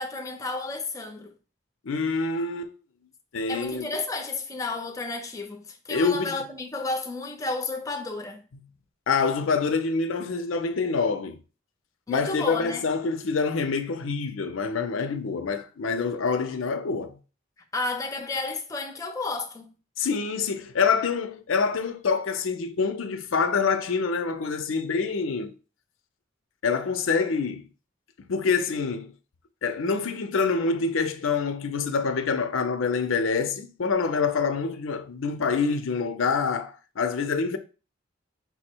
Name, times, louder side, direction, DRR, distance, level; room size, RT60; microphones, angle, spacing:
voice 1, 0.0-1.3 3.5-8.4 12.1-12.9 17.7-19.7, left 3 dB, 15° left, 0.5 m, -32 dB
voice 2, 1.8-2.7 3.3-3.9 5.9-6.4 9.1-11.4 12.1-17.2 20.0-25.5 26.6-27.6 28.3-29.1 29.6-37.6, left 5 dB, 90° left, 0.5 m, -26 dB
5.6 x 2.1 x 4.4 m
head